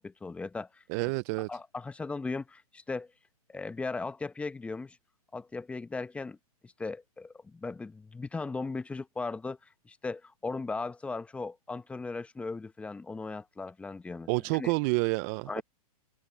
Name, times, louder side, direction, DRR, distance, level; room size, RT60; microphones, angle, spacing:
voice 1, 0.0-0.8 1.5-3.1 3.5-5.0 5.3-6.4 6.6-9.6 9.9-14.3 14.6-14.7 15.5-15.6, left 3 dB, 5° left, 0.8 m, -37 dB
voice 2, 0.9-1.5 14.3-15.6, right 28 dB, 30° right, 0.4 m, -29 dB
hypercardioid pair, 135°, 19 cm